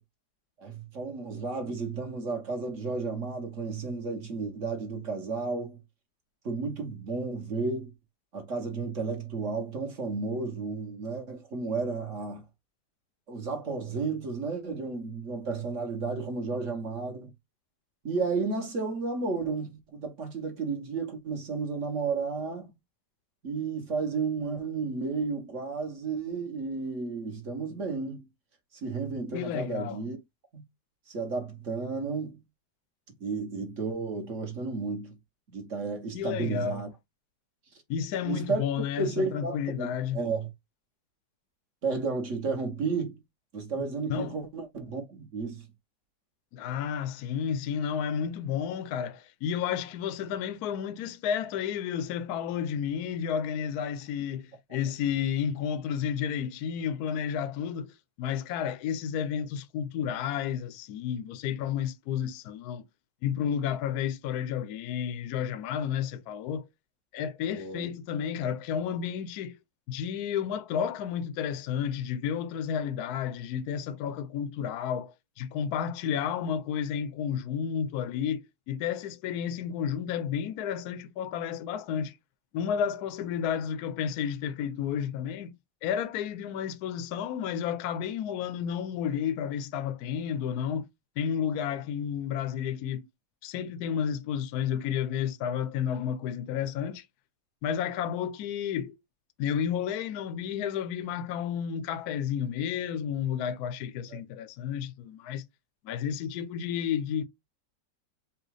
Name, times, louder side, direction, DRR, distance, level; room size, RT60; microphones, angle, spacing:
voice 1, 0.6-5.8 6.4-7.9 8.3-12.4 13.3-17.3 18.0-22.7 23.4-28.3 28.7-30.2 30.5-30.6 31.1-32.4 33.2-35.2 35.5-36.9 38.2-38.7 39.0-40.5 41.8-43.2 43.5-45.6 54.7-54.8 67.5-67.9 104.1-104.2, right 4 dB, 45° right, 1.4 m, -32 dB
voice 2, 29.3-30.0 36.1-36.8 37.9-40.2 43.8-44.4 46.5-62.8 63.2-66.7 67.1-69.6 69.9-82.2 82.5-85.5 85.8-90.9 91.2-93.1 93.4-97.1 97.6-99.0 99.4-105.4 105.8-107.2, left 8 dB, 70° left, 1.1 m, -31 dB
4.6 x 2.4 x 4.7 m
omnidirectional pair, 1.9 m